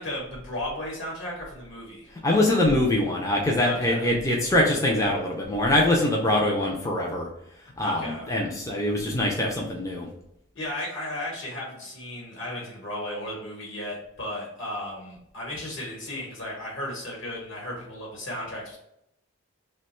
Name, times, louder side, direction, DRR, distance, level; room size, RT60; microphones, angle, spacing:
voice 1, 0.0-2.1 3.6-4.1 7.8-8.3 10.5-18.8, left 1 dB, 60° left, -4 dB, 1.1 m, -35 dB
voice 2, 2.1-7.3 7.8-10.1, left 1 dB, 15° left, -2 dB, 0.4 m, -23 dB
2.9 x 2.2 x 4.2 m, 0.78 s
head